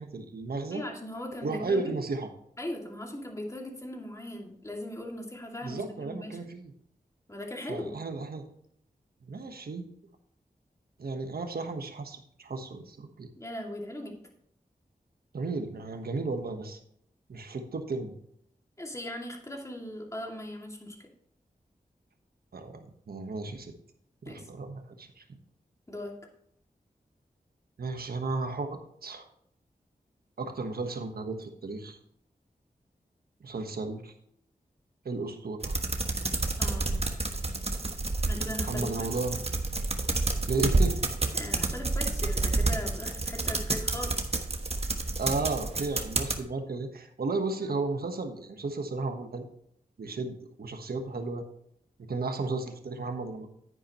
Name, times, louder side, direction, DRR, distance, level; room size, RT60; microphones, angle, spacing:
voice 1, 0.0-0.8 1.4-2.3 5.6-6.7 7.7-8.5 9.2-9.9 11.0-13.3 15.3-16.8 17.3-18.2 22.5-23.7 24.2-25.2 27.8-29.2 30.4-32.0 33.4-34.1 35.0-35.8 38.6-39.4 40.5-41.0 45.2-49.4 50.0-51.4 52.0-53.5, right 3 dB, 85° right, 6 dB, 1.3 m, -34 dB
voice 2, 0.7-1.9 2.6-6.4 7.3-8.0 13.4-14.2 18.8-21.0 24.3-24.5 25.9-26.1 36.6-37.0 38.2-39.2 41.3-44.1, left 1 dB, 20° left, 0 dB, 2.4 m, -39 dB
sound 1, 35.6-46.4, right 2 dB, 40° right, 1.2 m, -29 dB
9.9 x 9.8 x 3.1 m, 0.69 s
wide cardioid pair, 70°, 15 cm